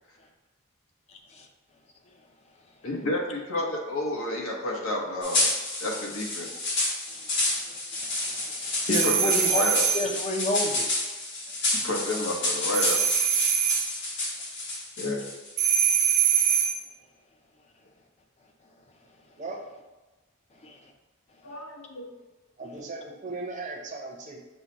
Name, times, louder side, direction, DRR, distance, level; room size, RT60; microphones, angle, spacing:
voice 1, 2.8-5.5 5.8-6.7 8.9-9.9 11.7-13.0 15.0-15.4 21.4-22.1, left 1 dB, 75° left, -1 dB, 1.0 m, -31 dB
sound 1, 5.2-15.5, left 2 dB, 60° left, 1.1 m, -29 dB
voice 2, 7.7-9.7 9.9-10.9 20.6-20.8, left 1 dB, 30° left, 3 dB, 0.5 m, -30 dB
sound 2, 8.9-10.1 12.7-13.9 15.6-16.8, right 8 dB, 85° right, 0.6 m, -23 dB
voice 3, 22.6-24.4, right 3 dB, 35° right, 0 dB, 0.6 m, -37 dB
6.0 x 2.1 x 4.0 m, 1.1 s
head